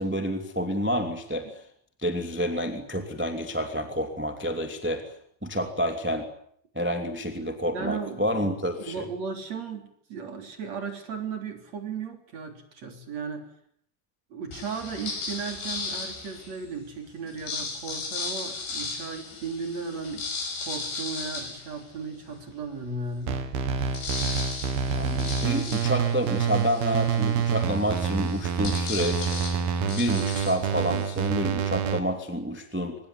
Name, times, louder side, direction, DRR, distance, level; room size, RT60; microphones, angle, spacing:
voice 1, 0.0-1.6 2.0-5.0 5.4-6.3 6.7-9.0 24.9-29.3 29.9-33.0, equal, 5° right, 5 dB, 1.6 m, -29 dB
voice 2, 7.7-8.3 8.8-13.5 14.3-20.3 20.6-23.4, right 5 dB, 40° right, 5 dB, 4.3 m, -36 dB
sound 1, 14.5-16.7 17.3-22.4 22.9-23.0 23.3-31.3, left 4 dB, 70° left, 7.7 m, -36 dB
sound 2, 23.3-32.0, right 7 dB, 65° right, 4.0 m, -27 dB
25.0 x 21.0 x 9.9 m, 0.67 s
omnidirectional pair, 5.0 m